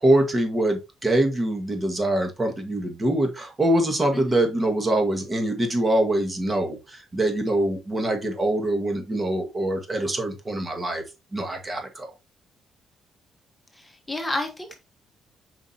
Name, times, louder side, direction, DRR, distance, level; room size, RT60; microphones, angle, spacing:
voice 1, 0.0-11.0 11.3-12.1, right 1 dB, 25° right, 1.9 m, -24 dB
voice 2, 13.7-14.8, left 2 dB, 15° left, 1.3 m, -31 dB
7.4 x 5.2 x 2.9 m
cardioid pair, 90°, 0 cm